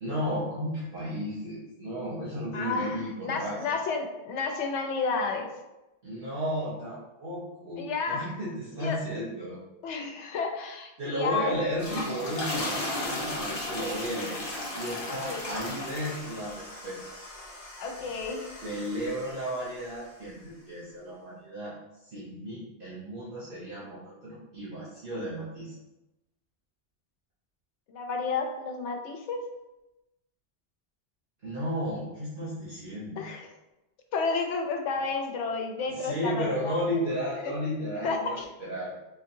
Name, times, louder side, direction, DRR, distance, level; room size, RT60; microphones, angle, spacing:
voice 1, 0.0-3.6 6.0-9.6 11.0-14.4 14.8-17.0 18.6-21.8 22.0-25.7 31.4-33.2 35.9-38.9, equal, 55° right, -9 dB, 1.0 m, -34 dB
voice 2, 2.5-5.5 7.8-8.4 8.8-9.0 9.8-11.8 15.0-15.5 17.8-18.5 27.9-29.4 33.2-33.5 34.1-36.8 37.4-37.5 38.0-38.5, left 4 dB, 85° left, 3 dB, 0.9 m, -31 dB
sound 1, 11.6-20.0, left 1 dB, 35° left, 0.7 m, -36 dB
3.8 x 2.7 x 2.6 m, 0.98 s
omnidirectional pair, 1.2 m